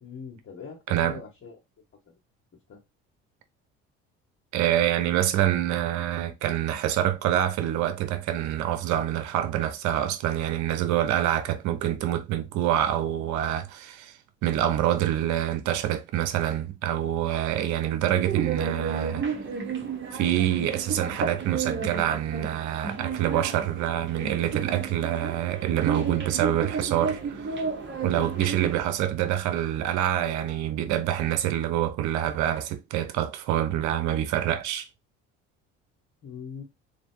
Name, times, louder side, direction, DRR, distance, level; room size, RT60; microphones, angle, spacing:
voice 1, 0.0-1.5 2.1-2.2 2.7-2.8 36.2-36.6, left 6 dB, 45° left, 1.4 m, -42 dB
voice 2, 0.9-1.2 4.5-19.2 20.1-27.6 28.0-34.9, right 12 dB, 70° right, 0.8 m, -26 dB
sound 1, 18.2-28.8, right 5 dB, 40° right, 1.3 m, -32 dB
3.3 x 2.7 x 4.5 m
supercardioid pair, 70°, 30 cm